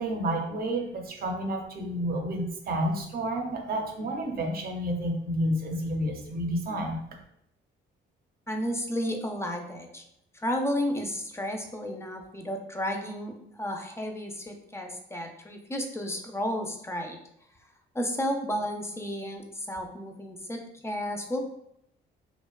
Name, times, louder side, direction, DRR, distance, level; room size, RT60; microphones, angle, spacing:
voice 1, 0.0-7.0, right 1 dB, 50° right, 2 dB, 0.5 m, -30 dB
voice 2, 8.5-10.0 10.3-17.2 17.9-21.5, equal, 15° left, 3 dB, 0.3 m, -32 dB
2.7 x 2.1 x 2.2 m, 0.76 s
cardioid pair, 90°, 20 cm